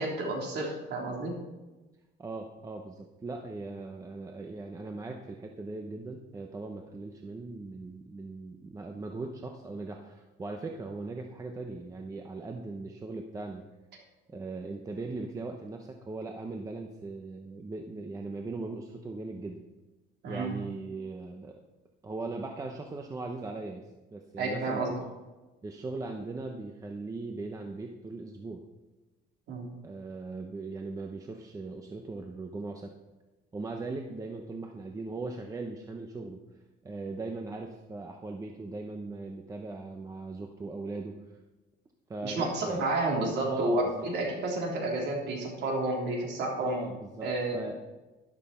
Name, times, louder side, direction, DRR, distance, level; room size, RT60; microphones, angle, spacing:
voice 1, 0.0-1.4 20.2-20.5 24.4-24.9 29.5-29.7 42.2-46.8 47.2-47.8, right 2 dB, 60° right, 0 dB, 3.5 m, -30 dB
voice 2, 2.2-13.7 14.3-19.7 20.3-21.5 22.0-25.1 25.6-28.6 29.8-32.9 33.5-36.5 36.8-41.2 42.1-42.9 43.5-44.0 46.6-47.8, right 3 dB, 15° right, 3 dB, 0.8 m, -39 dB
12.5 x 11.5 x 4.3 m, 1.1 s
cardioid pair, 165°, 20 cm